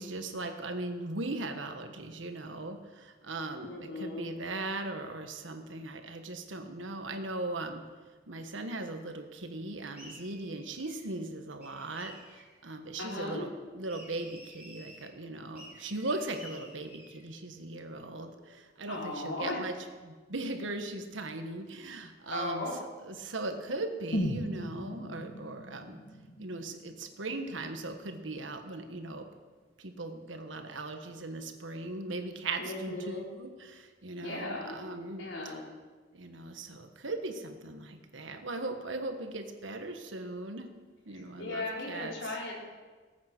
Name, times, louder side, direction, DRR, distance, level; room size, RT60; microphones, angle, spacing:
voice 1, 0.0-7.8 8.3-19.7 20.0-22.7 23.0-26.0 26.4-29.3 29.8-35.2 36.1-40.7 41.0-42.1, right 2 dB, 80° right, 6 dB, 1.5 m, -39 dB
voice 2, 3.6-4.3 13.0-13.5 18.9-19.6 22.3-22.8 32.6-33.2 34.2-34.8 35.2-35.6 41.1-42.5, left 2 dB, 85° left, -3 dB, 4.0 m, -37 dB
sound 1, 9.9-11.1 11.6-12.6 13.9-15.1 15.6-17.2, equal, 5° right, 5.3 m, -52 dB
sound 2, 24.1-28.1 28.4-28.5, equal, 50° left, 1.5 m, -37 dB
19.5 x 8.8 x 6.1 m, 1.4 s
head